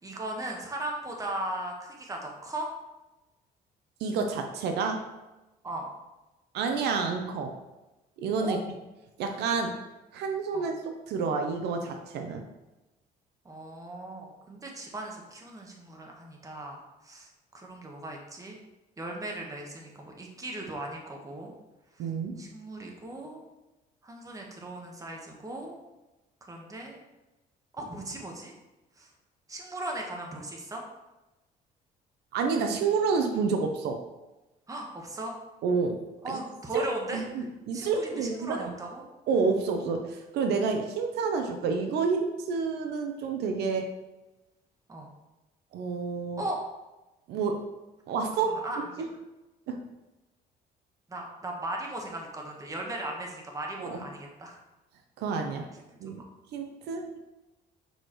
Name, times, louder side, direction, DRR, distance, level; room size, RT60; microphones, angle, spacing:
voice 1, 0.0-2.7 5.6-5.9 8.4-8.6 10.5-10.7 13.4-17.3 17.5-18.6 19.0-21.5 21.9-22.1 22.4-23.4 24.0-25.7 26.5-27.0 27.7-28.5 29.0-29.1 29.5-30.8 34.7-35.3 36.2-37.4 37.7-39.0 44.9-45.1 46.4-46.6 48.3-48.8 51.1-54.6 56.0-56.3, right 1 dB, 20° right, 0 dB, 1.3 m, -38 dB
voice 2, 4.0-5.1 6.5-7.6 8.2-8.6 9.2-9.8 10.1-12.5 22.0-22.4 32.3-34.0 35.6-36.4 36.7-36.9 37.1-38.7 39.3-43.9 45.7-46.4 47.3-47.7 48.1-48.6 49.0-49.1 49.7-49.9 53.8-54.0 55.2-55.7 56.0-56.2 56.5-57.2, right 5 dB, 75° right, 5 dB, 0.7 m, -29 dB
6.5 x 4.8 x 3.1 m, 1.1 s
cardioid pair, 110°, 17 cm